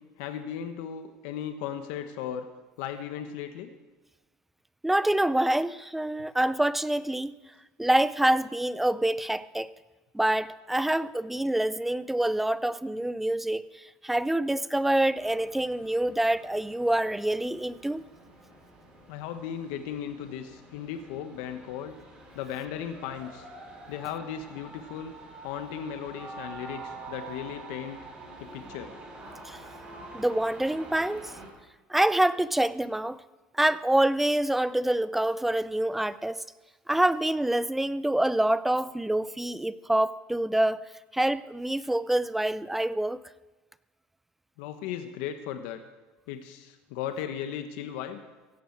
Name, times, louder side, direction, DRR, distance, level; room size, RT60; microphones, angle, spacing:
voice 1, 0.2-2.5 2.8-3.7 19.1-21.9 22.3-23.5 23.9-25.1 25.4-28.0 28.4-28.9 44.6-45.8 46.3-48.2, left 9 dB, 80° left, 7 dB, 1.2 m, -36 dB
voice 2, 4.8-7.3 7.8-9.7 10.1-18.0 29.5-29.6 30.1-31.3 31.9-33.2 33.5-36.4 36.9-40.8 41.1-43.2, right 1 dB, 5° right, 16 dB, 0.4 m, -26 dB
sound 1, 15.2-31.5, right 2 dB, 20° right, 6.1 m, -47 dB
16.0 x 11.0 x 7.3 m, 1.2 s
cardioid pair, 140°, 4 cm